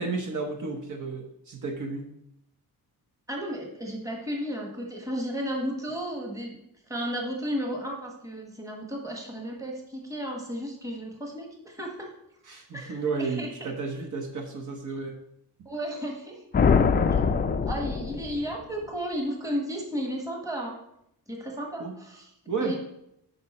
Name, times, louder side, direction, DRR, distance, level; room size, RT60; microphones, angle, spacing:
voice 1, 0.0-2.0 12.5-15.2 21.8-22.0 22.5-22.7, right 4 dB, 55° right, 3 dB, 1.1 m, -32 dB
voice 2, 3.3-6.6 6.9-12.1 12.7-13.7 15.6-16.4 17.6-20.8 21.3-22.3 22.6-22.7, equal, 10° right, 0 dB, 1.3 m, -33 dB
sound 1, 16.5-18.7, left 5 dB, 25° left, 0.4 m, -23 dB
9.3 x 5.5 x 4.2 m, 0.79 s
wide cardioid pair, 170°, 37 cm